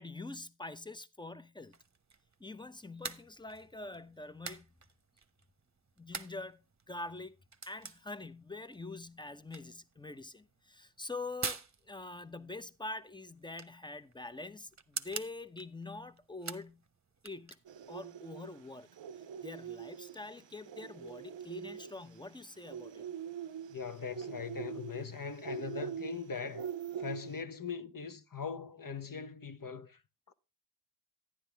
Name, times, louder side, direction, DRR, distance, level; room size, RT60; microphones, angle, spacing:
voice 1, 0.0-1.8 2.4-4.7 6.0-6.6 6.9-7.4 7.7-16.8 17.2-17.6 17.9-18.9 19.4-23.0, left 2 dB, 10° left, 0.8 m, -45 dB
sound 1, 1.6-18.0, right 5 dB, 35° right, 1.0 m, -48 dB
sound 2, 17.7-27.4, right 8 dB, 70° right, 0.6 m, -44 dB
voice 2, 23.7-26.7 27.0-30.0 30.3-30.4, left 5 dB, 45° left, 1.0 m, -41 dB
10.0 x 10.0 x 3.4 m
cardioid pair, 45°, 46 cm